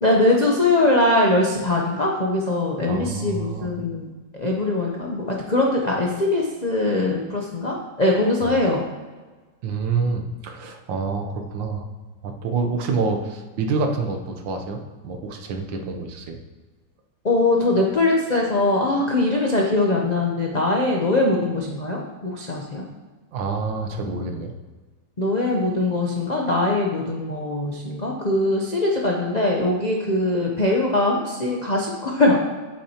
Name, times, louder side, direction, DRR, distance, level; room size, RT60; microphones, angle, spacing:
voice 1, 0.0-4.1 4.3-8.8 17.2-22.8 25.2-32.4, left 2 dB, 65° left, -2 dB, 0.4 m, -21 dB
voice 2, 2.9-3.7 8.4-8.5 9.6-11.9 12.2-16.4 23.3-24.5, right 4 dB, 70° right, 4 dB, 1.6 m, -27 dB
8.7 x 8.4 x 2.9 m, 1.3 s
omnidirectional pair, 2.2 m